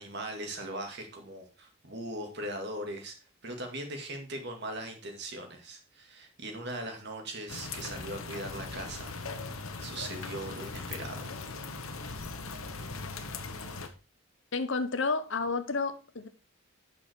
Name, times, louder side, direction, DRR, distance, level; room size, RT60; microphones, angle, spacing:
voice 1, 0.0-3.2 3.4-9.2 9.8-11.4, right 1 dB, 55° right, 2.2 m, -39 dB
sound 1, 7.5-13.9, left 4 dB, 85° left, 1.2 m, -39 dB
voice 2, 14.5-16.3, left 4 dB, 60° left, 0.9 m, -30 dB
8.7 x 6.3 x 4.5 m
head